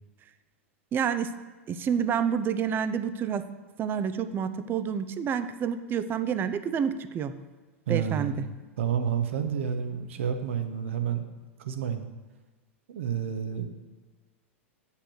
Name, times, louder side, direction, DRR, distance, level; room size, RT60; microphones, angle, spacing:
voice 1, 0.9-1.3 1.7-3.4 3.8-7.4 7.9-8.5, right 7 dB, 30° right, 11 dB, 0.7 m, -28 dB
voice 2, 7.9-8.3 8.8-11.2 11.6-12.0 12.9-13.7, right 8 dB, 70° right, 7 dB, 1.1 m, -29 dB
8.5 x 5.7 x 6.3 m, 1.3 s
hypercardioid pair, 100°, 7 cm